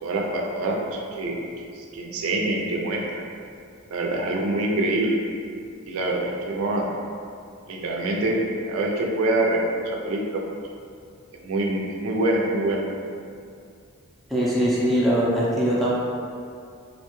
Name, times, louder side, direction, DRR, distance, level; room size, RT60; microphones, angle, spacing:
voice 1, 0.0-1.4 1.8-3.3 3.9-5.2 5.9-6.9 7.7-8.4 8.7-10.4 11.4-12.8, right 2 dB, 85° right, 0 dB, 0.4 m, -25 dB
voice 2, 14.3-15.9, equal, ahead, -7 dB, 0.4 m, -21 dB
2.4 x 2.2 x 3.0 m, 2.3 s
head